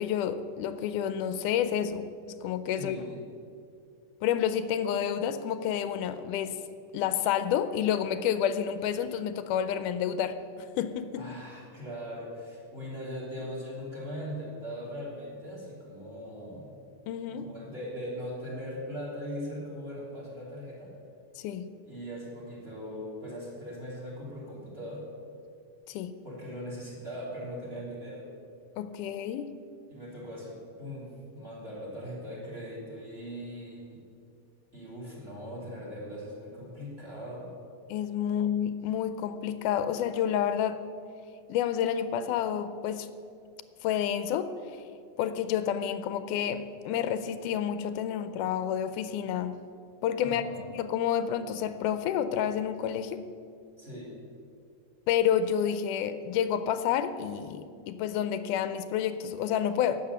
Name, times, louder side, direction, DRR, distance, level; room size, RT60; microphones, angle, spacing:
voice 1, 0.0-2.0 2.4-3.0 4.2-6.6 6.9-11.3 17.1-17.5 21.4-21.7 25.9-26.1 28.8-29.5 37.9-40.8 41.5-43.1 43.8-44.5 45.2-49.5 50.0-53.2 55.1-60.0, left 9 dB, 90° left, 11 dB, 2.2 m, -29 dB
voice 2, 2.7-3.2 11.1-16.8 17.2-20.9 21.8-25.0 26.2-28.3 29.9-34.0 34.7-37.5 50.2-50.6 53.8-54.2, equal, 20° right, -3 dB, 3.0 m, -40 dB
11.5 x 8.2 x 6.9 m, 2.4 s
omnidirectional pair, 3.5 m